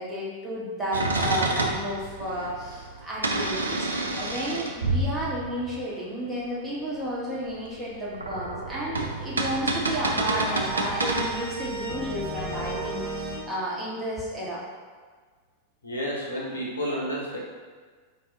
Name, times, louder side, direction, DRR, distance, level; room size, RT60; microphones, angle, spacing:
voice 1, 0.0-3.9 4.1-14.6, equal, 5° right, -8 dB, 1.3 m, -32 dB
sound 1, 0.9-5.8 7.8-12.9, right 2 dB, 75° right, 0.5 m, -29 dB
sound 2, 10.2-13.4, right 3 dB, 20° left, 1.3 m, -34 dB
voice 2, 15.8-17.4, equal, 75° left, -4 dB, 0.9 m, -30 dB
4.7 x 2.7 x 3.8 m, 1.5 s
figure-of-eight pair, 90°, 0 cm